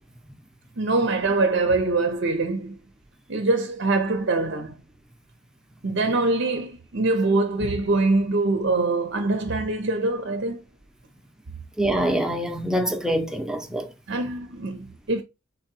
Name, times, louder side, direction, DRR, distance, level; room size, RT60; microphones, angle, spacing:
voice 1, 0.8-2.8 3.3-4.8 5.8-10.6 14.1-15.2, right 3 dB, 65° right, 0.7 m, -23 dB
voice 2, 11.8-13.9, right 1 dB, 5° right, 0.7 m, -25 dB
4.1 x 2.9 x 4.3 m
head